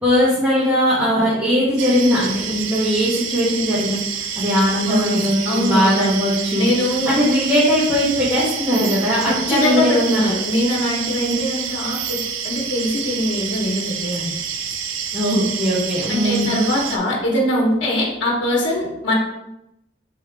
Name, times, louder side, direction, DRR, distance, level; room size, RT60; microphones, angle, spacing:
voice 1, 0.0-4.0 4.4-6.7 7.1-10.2 11.2-11.3 15.1-16.6, equal, 10° right, -11 dB, 1.1 m, -19 dB
sound 1, 1.8-17.0, right 7 dB, 80° right, 0.5 m, -28 dB
voice 2, 4.8-6.2 6.5-7.1 8.9-9.0 9.2-12.2 12.4-14.3 16.1-19.1, left 1 dB, 70° left, -4 dB, 1.1 m, -22 dB
3.7 x 3.1 x 4.5 m, 0.87 s
head